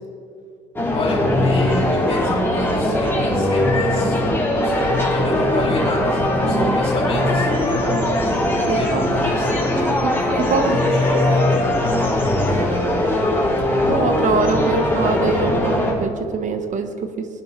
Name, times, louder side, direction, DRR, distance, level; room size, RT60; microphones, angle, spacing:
sound 1, 0.8-15.9, left 1 dB, 15° left, 3.5 m, -20 dB
voice 1, 0.9-4.2 4.6-8.0 8.6-9.5 10.6-12.2, left 3 dB, 35° left, -2 dB, 3.0 m, -25 dB
voice 2, 8.7-9.0 10.0-10.7 13.9-17.3, right 5 dB, 45° right, 7 dB, 1.3 m, -24 dB
19.0 x 10.0 x 3.4 m, 2.2 s
cardioid pair, 110°, 17 cm